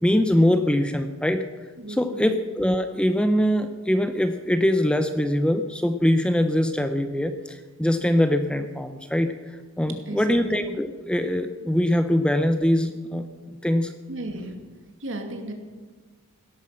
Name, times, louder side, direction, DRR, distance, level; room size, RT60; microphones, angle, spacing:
voice 1, 0.0-1.5 1.9-9.3 9.8-13.9, left 1 dB, 5° left, 9 dB, 0.6 m, -23 dB
voice 2, 1.8-2.4 10.1-10.5 14.1-14.5 15.0-15.5, right 1 dB, 60° right, 4 dB, 2.5 m, -35 dB
17.0 x 13.5 x 5.8 m, 1.4 s
head